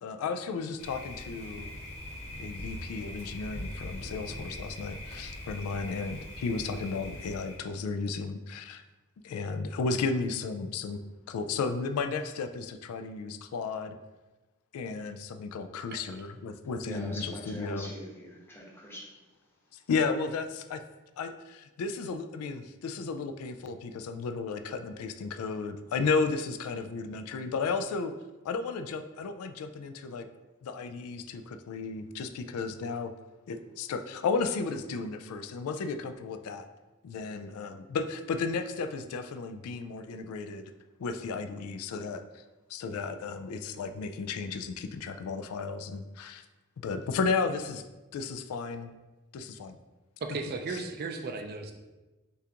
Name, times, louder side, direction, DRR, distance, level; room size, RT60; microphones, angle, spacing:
voice 1, 0.0-1.7 2.4-8.8 9.2-11.0 11.3-14.0 14.7-17.9 19.9-20.8 21.2-28.1 28.4-30.3 30.6-33.1 33.5-36.7 37.0-40.6 41.0-42.4 42.7-46.4 46.8-47.8 48.1-48.9 49.3-49.8, left 4 dB, 80° left, 8 dB, 0.3 m, -33 dB
Thunder, 0.8-7.6, left 1 dB, 30° left, 1.1 m, -41 dB
voice 2, 16.8-19.1, equal, 10° left, -3 dB, 0.8 m, -43 dB
voice 3, 50.2-51.7, right 3 dB, 45° right, 5 dB, 0.4 m, -35 dB
6.7 x 2.5 x 2.9 m, 1.1 s
head